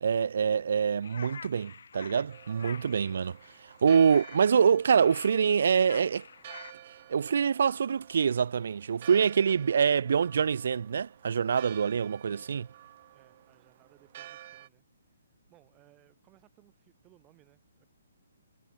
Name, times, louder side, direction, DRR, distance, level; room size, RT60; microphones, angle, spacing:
voice 1, 0.0-3.4 3.8-6.3 7.1-12.7, right 7 dB, 60° right, 0.4 m, -25 dB
sound 1, 1.0-6.7, left 6 dB, 65° left, 2.4 m, -48 dB
Church bell, 2.3-14.7, right 13 dB, 35° right, 0.9 m, -51 dB
voice 2, 12.2-12.7 13.1-14.9 15.5-17.9, right 18 dB, 15° right, 2.6 m, -64 dB
hypercardioid pair, 170°, 0 cm